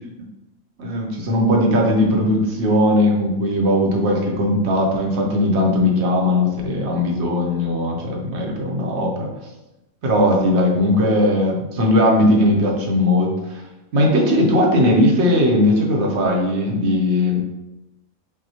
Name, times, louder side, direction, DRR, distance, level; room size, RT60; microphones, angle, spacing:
voice 1, 0.8-9.3 10.0-13.6 13.9-17.4, left 1 dB, 60° right, 0 dB, 0.9 m, -18 dB
5.9 x 2.1 x 2.8 m, 0.98 s
omnidirectional pair, 1.5 m